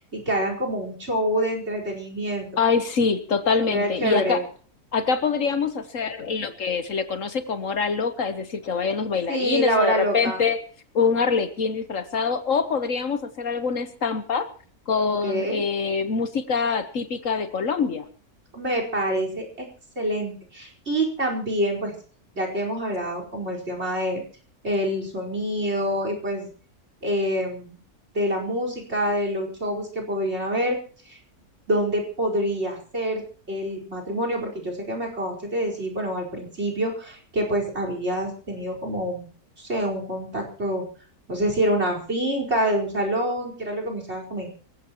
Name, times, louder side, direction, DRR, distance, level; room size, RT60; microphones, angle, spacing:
voice 1, 0.1-2.5 3.7-4.4 9.3-10.4 15.1-15.6 18.5-19.7 20.0-21.9 22.3-24.2 24.6-26.5 27.0-27.8 28.1-30.8 31.0-31.2 31.7-39.3 39.6-40.8 41.3-44.6, equal, 45° right, 2 dB, 4.9 m, -26 dB
voice 2, 2.6-4.4 4.9-10.6 10.9-14.5 14.9-18.1, left 5 dB, 60° left, 11 dB, 1.5 m, -24 dB
25.0 x 15.5 x 3.0 m, 0.43 s
omnidirectional pair, 1.6 m